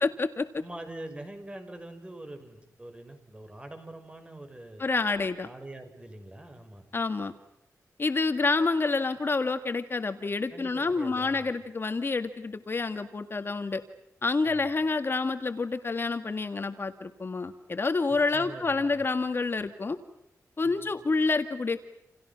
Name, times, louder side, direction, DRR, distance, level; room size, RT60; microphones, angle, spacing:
voice 1, 0.0-0.5 4.8-5.5 6.9-7.3 8.0-13.8 14.2-20.0 20.6-21.8, left 3 dB, 40° left, 8 dB, 1.8 m, -28 dB
voice 2, 0.6-4.8 5.4-6.8 10.5-11.5 14.5-14.7 18.1-19.0 20.6-20.9, right 1 dB, 20° right, 7 dB, 6.2 m, -44 dB
29.5 x 29.0 x 6.0 m, 0.80 s
wide cardioid pair, 105°, 6 cm